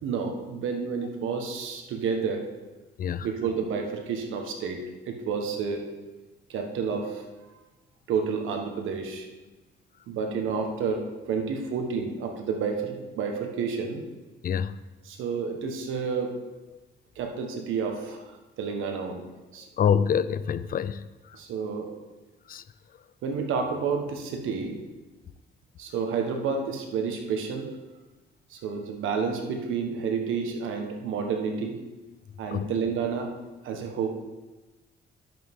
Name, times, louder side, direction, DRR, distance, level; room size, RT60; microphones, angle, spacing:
voice 1, 0.0-2.4 3.2-5.8 6.5-7.5 8.1-9.3 10.1-14.0 15.0-16.4 17.1-19.2 19.5-19.7 21.3-21.9 23.2-24.8 25.8-27.7 28.5-31.7 32.4-33.3 33.6-34.1, right 5 dB, 85° right, 4 dB, 1.4 m, -30 dB
voice 2, 14.4-14.8 19.8-21.0 22.5-22.6 32.5-32.7, left 7 dB, 45° left, 15 dB, 0.4 m, -25 dB
10.5 x 7.5 x 3.7 m, 1.1 s
cardioid pair, 90°, 20 cm